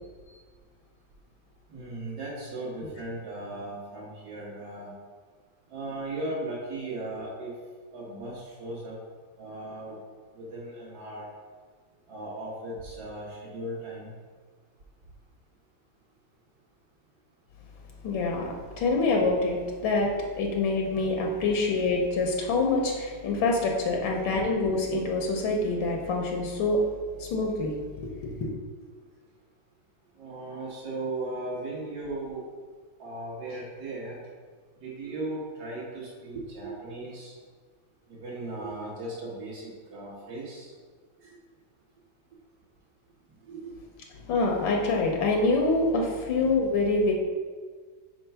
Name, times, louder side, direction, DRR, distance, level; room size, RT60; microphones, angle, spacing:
voice 1, 1.7-4.9 5.7-7.5 7.9-9.0 9.4-10.0 10.3-11.3 12.1-14.1 24.1-24.2 30.2-32.5 33.0-34.2 34.8-37.3 38.1-40.8 41.2-41.4 43.4-43.7, right 2 dB, 55° right, -7 dB, 1.8 m, -37 dB
voice 2, 18.0-20.1 20.4-26.8 27.2-27.7 28.0-28.1 28.4-28.5 44.3-47.1, left 3 dB, 75° left, 1 dB, 1.5 m, -26 dB
4.6 x 4.5 x 5.5 m, 1.5 s
omnidirectional pair, 2.1 m